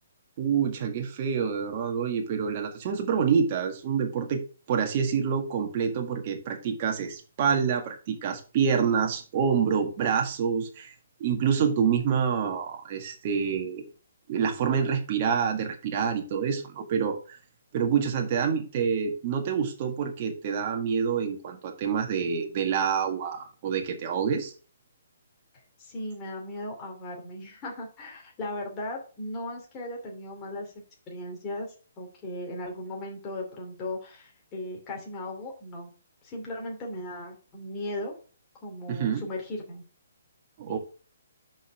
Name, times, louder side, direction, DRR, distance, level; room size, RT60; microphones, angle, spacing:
voice 1, 0.4-4.4 4.7-10.9 11.2-13.8 14.3-17.4 17.7-24.5 38.9-39.2 40.6-40.8, right 7 dB, 40° right, 3 dB, 1.7 m, -27 dB
voice 2, 25.8-30.7 31.1-35.9 36.2-38.1 38.6-39.8 40.7-40.8, left 1 dB, 20° left, -1 dB, 2.6 m, -37 dB
5.4 x 5.3 x 6.3 m, 0.37 s
hypercardioid pair, 155°, 0 cm